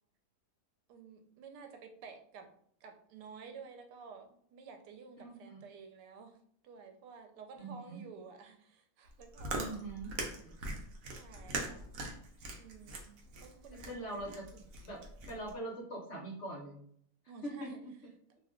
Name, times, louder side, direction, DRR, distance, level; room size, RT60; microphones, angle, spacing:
voice 1, 0.9-2.5 2.8-6.4 6.6-9.6 11.1-11.8 12.6-13.1 13.4-14.0 17.3-17.8, right 5 dB, 85° right, 5 dB, 1.2 m, -52 dB
voice 2, 5.2-5.6 7.6-8.0 9.5-10.1 10.3-10.5 13.9-16.8 17.4-17.7, right 1 dB, 55° left, -2 dB, 0.9 m, -43 dB
Chewing mastication, 9.1-15.5, right 2 dB, 65° right, 1.0 m, -42 dB
2.8 x 2.2 x 3.6 m, 0.65 s
omnidirectional pair, 1.7 m